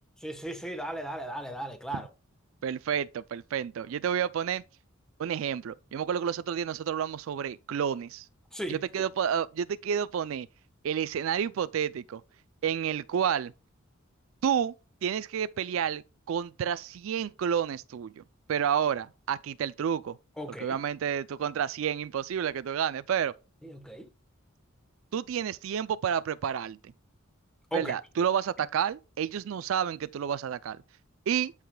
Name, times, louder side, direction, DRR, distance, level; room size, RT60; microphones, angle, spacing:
voice 1, 0.2-2.1 8.5-9.1 20.4-20.8 23.6-24.1 27.7-27.9, right 1 dB, 5° left, 1.1 m, -36 dB
voice 2, 2.6-4.6 5.2-8.3 8.7-10.5 10.8-12.2 12.6-13.5 14.4-14.7 15.0-18.2 18.5-20.2 20.6-23.3 25.1-26.8 27.7-30.8 31.3-31.5, right 8 dB, 70° right, 0.3 m, -30 dB
13.5 x 4.9 x 2.2 m
head